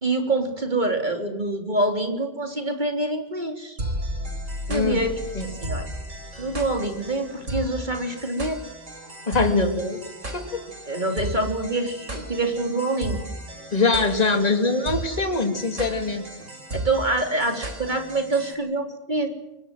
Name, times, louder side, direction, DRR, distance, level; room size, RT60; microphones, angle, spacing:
voice 1, 0.0-3.8 4.7-5.1 5.4-5.9 6.4-8.6 10.9-13.2 16.7-19.3, right 2 dB, 35° right, 4 dB, 3.7 m, -26 dB
sound 1, 3.8-18.5, right 1 dB, 70° right, 4.4 m, -35 dB
voice 2, 4.7-5.1 5.3-5.4 9.3-10.0 10.3-10.6 13.7-16.2, left 3 dB, 30° left, 6 dB, 2.7 m, -23 dB
26.5 x 23.0 x 7.8 m, 0.90 s
omnidirectional pair, 1.3 m